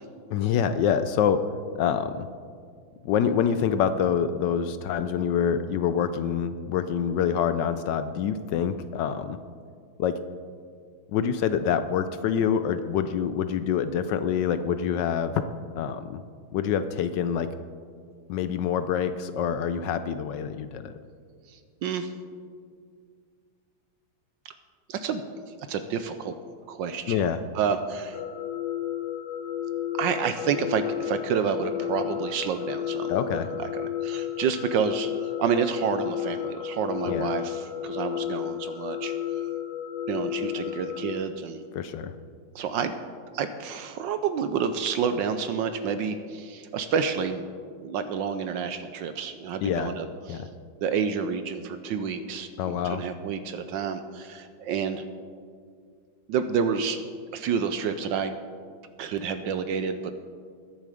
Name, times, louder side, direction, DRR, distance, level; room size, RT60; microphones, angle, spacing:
voice 1, 0.3-1.4 1.8-2.3 3.0-9.4 10.0-10.1 11.1-15.3 15.8-16.2 16.5-17.5 18.3-20.9 27.1-27.4 33.1-33.5 37.1-37.3 41.7-42.1 49.6-49.9 50.3-50.5 52.6-53.0, left 8 dB, 75° left, 11 dB, 1.1 m, -26 dB
voice 2, 21.5-22.1 24.4-24.5 24.9-25.2 25.7-26.4 26.7-28.2 29.9-33.1 33.5-39.4 40.1-41.6 42.5-42.9 43.3-47.4 47.8-50.4 50.8-55.0 56.3-57.0 57.3-58.3 59.0-60.1, right 6 dB, 75° right, 10 dB, 1.2 m, -29 dB
sound 1, 28.1-41.1, left 11 dB, 50° left, 1.0 m, -32 dB
21.0 x 7.1 x 4.9 m, 2.1 s
omnidirectional pair, 2.3 m